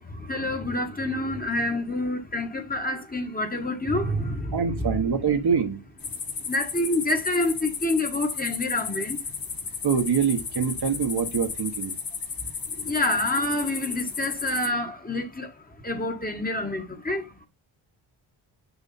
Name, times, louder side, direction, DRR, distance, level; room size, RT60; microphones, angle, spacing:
voice 1, 0.1-5.1 6.4-9.2 12.8-15.5 15.8-17.3, left 1 dB, 20° left, 1.7 m, -27 dB
voice 2, 4.5-5.8 9.8-11.9, right 6 dB, 50° right, 1.4 m, -24 dB
sound 1, 6.0-14.7, left 5 dB, 45° left, 1.4 m, -34 dB
7.1 x 4.9 x 4.3 m
wide cardioid pair, 105°, 48 cm